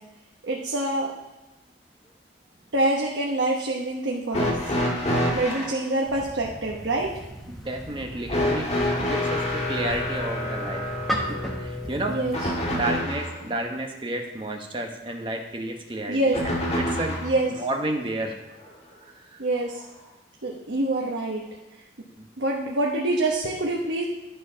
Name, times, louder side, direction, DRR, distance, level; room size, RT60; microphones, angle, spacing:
voice 1, 0.4-1.1 2.7-4.7 5.3-7.1 12.1-12.4 16.1-16.4 17.2-17.5 19.4-19.8 20.4-21.4 22.4-24.0, right 2 dB, 80° right, -2 dB, 1.1 m, -25 dB
sound 1, 4.3-5.8 8.3-13.4 16.3-17.4 18.6-18.7 19.8-19.9, left 1 dB, 35° left, 1.8 m, -27 dB
sound 2, 6.0-12.8, equal, ahead, 1.0 m, -37 dB
voice 2, 7.5-10.9 11.2-16.4 16.7-18.4 19.0-19.4 22.2-22.3, right 1 dB, 25° right, 2 dB, 1.0 m, -32 dB
11.5 x 4.6 x 5.7 m, 1.0 s
head